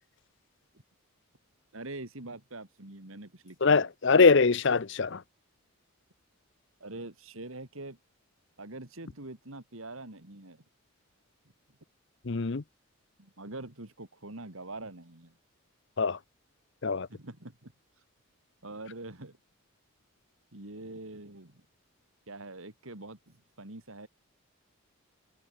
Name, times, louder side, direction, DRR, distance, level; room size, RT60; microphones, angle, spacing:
voice 1, 1.7-3.9 6.8-8.0 8.6-10.6 13.2-15.4 17.1-17.7 18.6-19.4 20.5-21.6 22.3-24.1, right 2 dB, 75° right, 2.9 m, -44 dB
voice 2, 3.6-5.2 12.3-12.6 16.0-16.2 16.8-17.1, left 4 dB, 55° left, 0.7 m, -23 dB
head